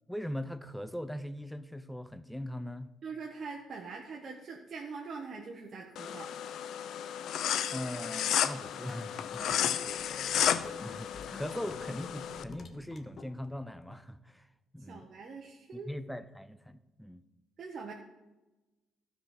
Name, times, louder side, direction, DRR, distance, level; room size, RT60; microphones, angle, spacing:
voice 1, 0.1-2.9 7.7-9.8 10.5-14.5 14.7-15.1 15.7-17.2, equal, ahead, 12 dB, 0.5 m, -40 dB
voice 2, 3.0-6.3 9.3-10.0 14.9-15.9 17.6-17.9, right 4 dB, 45° right, 0 dB, 1.2 m, -43 dB
sound 1, 6.0-12.4, left 9 dB, 70° left, 0.5 m, -33 dB
sound 2, 8.9-13.7, left 4 dB, 45° left, 1.0 m, -49 dB
12.0 x 5.0 x 5.8 m, 1.1 s
cardioid pair, 85°, 0 cm